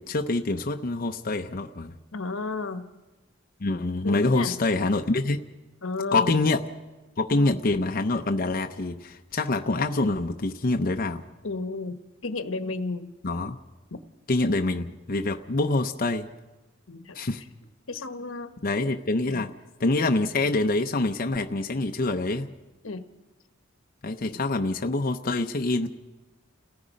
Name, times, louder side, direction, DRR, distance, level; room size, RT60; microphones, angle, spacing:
voice 1, 0.0-1.9 3.6-5.4 6.1-6.6 7.2-11.2 13.2-13.6 14.3-16.3 17.1-17.4 18.6-19.5 19.8-22.5 24.0-25.9, left 2 dB, 45° left, 5 dB, 0.7 m, -25 dB
voice 2, 2.1-2.9 4.0-4.5 5.8-6.3 7.3-7.6 11.4-13.1 13.9-14.0 16.9-17.2 17.9-18.5 19.2-19.4 22.8-23.0 24.2-24.4, left 3 dB, 85° left, 9 dB, 1.2 m, -33 dB
29.5 x 17.5 x 5.2 m, 1.1 s
head